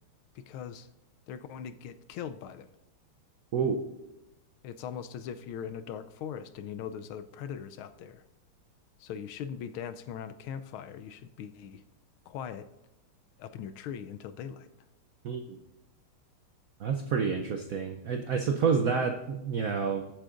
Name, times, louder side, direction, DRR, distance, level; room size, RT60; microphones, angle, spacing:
voice 1, 0.3-0.9 1.3-2.7 4.6-8.2 9.0-11.8 12.3-12.7 13.4-14.7, left 8 dB, 80° left, 11 dB, 1.4 m, -40 dB
voice 2, 15.2-15.6 16.8-20.1, right 5 dB, 75° right, 4 dB, 0.7 m, -29 dB
21.5 x 7.7 x 2.5 m, 0.98 s
omnidirectional pair, 2.3 m